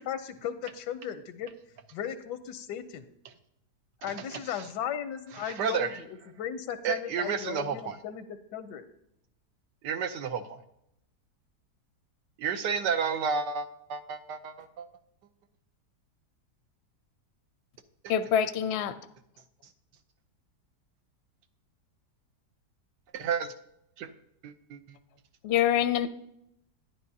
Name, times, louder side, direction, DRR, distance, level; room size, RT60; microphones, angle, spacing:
voice 1, 0.0-1.5 1.9-3.1 4.0-8.8, left 9 dB, 85° left, 1.2 m, -36 dB
voice 2, 5.6-5.9 6.8-8.0 9.8-10.6 12.4-14.9 23.1-23.5 24.0-24.1 24.4-24.8, right 6 dB, 90° right, 1.4 m, -31 dB
voice 3, 18.1-19.0 25.4-26.1, left 9 dB, 65° left, 0.6 m, -25 dB
11.0 x 10.5 x 2.7 m
omnidirectional pair, 1.8 m